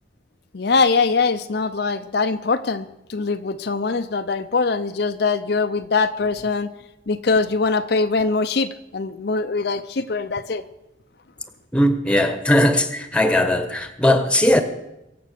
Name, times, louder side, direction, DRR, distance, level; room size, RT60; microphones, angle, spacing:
voice 1, 0.5-6.7 7.1-10.6, left 4 dB, 60° left, 0.6 m, -22 dB
voice 2, 11.7-14.6, left 1 dB, 5° left, 1.1 m, -18 dB
22.5 x 7.9 x 6.7 m
head